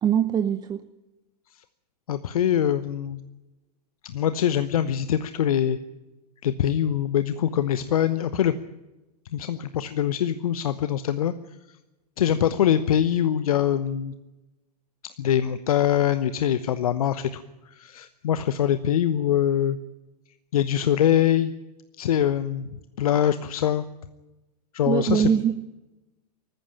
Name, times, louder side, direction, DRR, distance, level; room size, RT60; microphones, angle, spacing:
voice 1, 0.0-0.8 24.9-25.5, right 8 dB, 20° right, 11 dB, 0.8 m, -22 dB
voice 2, 2.1-3.2 4.0-5.8 6.4-8.6 9.3-11.3 12.2-14.1 15.2-17.4 17.7-19.8 20.5-21.5 22.0-22.7 23.0-23.8 24.7-25.3, left 10 dB, 60° left, 13 dB, 1.0 m, -23 dB
19.5 x 14.5 x 10.0 m, 1.0 s
figure-of-eight pair, 100°, 21 cm